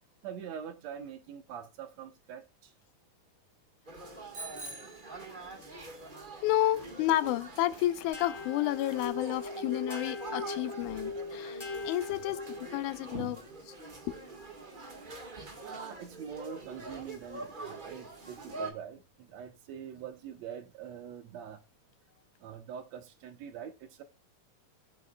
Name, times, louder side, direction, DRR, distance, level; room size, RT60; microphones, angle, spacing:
voice 1, 0.2-2.7 13.1-13.4 15.6-21.6 22.4-24.0, right 8 dB, 70° right, 2.1 m, -44 dB
sound 1, 3.9-18.7, right 3 dB, 45° right, 0.6 m, -45 dB
Bicycle bell, 4.3-5.9, right 2 dB, 90° right, 6.4 m, -45 dB
voice 2, 6.4-12.4 12.7-13.4 14.1-14.2, left 14 dB, 85° left, 2.2 m, -31 dB
sound 2, 8.1-12.9, left 3 dB, 10° left, 3.3 m, -40 dB
19.5 x 8.1 x 2.2 m
omnidirectional pair, 3.4 m